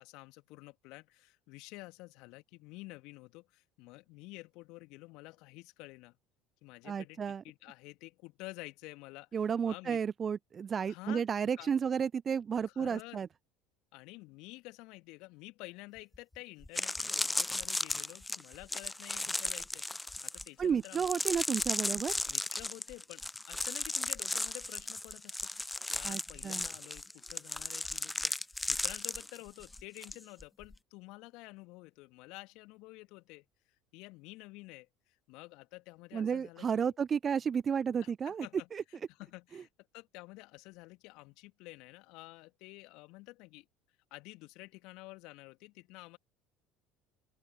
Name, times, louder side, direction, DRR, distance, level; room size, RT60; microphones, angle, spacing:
voice 1, 0.0-6.2 6.6-10.0 10.8-11.2 11.6-11.7 12.7-13.2 13.9-21.1 22.3-33.5 33.9-36.9 38.0-43.7 44.1-46.2, left 23 dB, 60° left, 2.7 m, -50 dB
voice 2, 6.8-7.4 9.3-13.3 20.6-22.1 26.0-26.7 36.1-38.5 38.7-38.8, right 7 dB, 35° right, 0.5 m, -32 dB
sound 1, 16.1-16.2 16.6-30.2 30.4-30.8, left 2 dB, 10° left, 0.6 m, -36 dB
open air
figure-of-eight pair, 65°, 0 cm